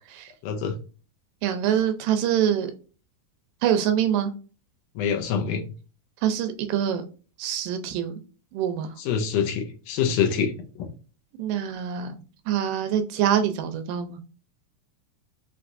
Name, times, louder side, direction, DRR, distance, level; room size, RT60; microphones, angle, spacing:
voice 1, 0.4-0.7 5.0-5.7 9.0-10.5, left 7 dB, 80° left, 5 dB, 2.0 m, -25 dB
voice 2, 1.4-2.7 3.6-4.3 6.2-7.0 7.4-8.2 8.5-8.9 11.4-12.1 12.5-14.2, right 9 dB, 80° right, 8 dB, 2.1 m, -25 dB
5.9 x 2.7 x 2.5 m, 0.35 s
omnidirectional pair, 4.0 m